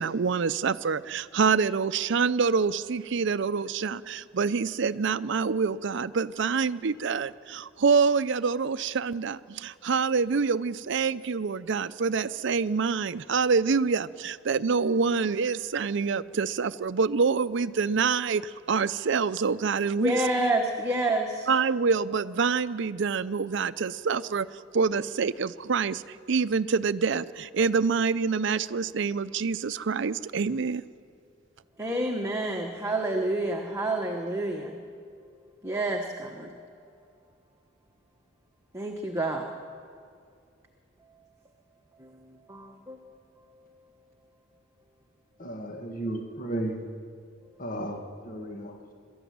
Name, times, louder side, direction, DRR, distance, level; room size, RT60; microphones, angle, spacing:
voice 1, 0.0-20.2 21.5-30.8, right 5 dB, 65° right, 13 dB, 0.5 m, -26 dB
voice 2, 20.0-21.5 31.8-34.8 35.6-36.6 38.7-39.4 42.0-42.1 42.5-43.0, right 1 dB, 15° right, 1 dB, 1.2 m, -28 dB
voice 3, 45.4-46.8 47.6-48.9, right 1 dB, 45° left, 3 dB, 1.8 m, -34 dB
22.5 x 13.5 x 9.4 m, 2.3 s
head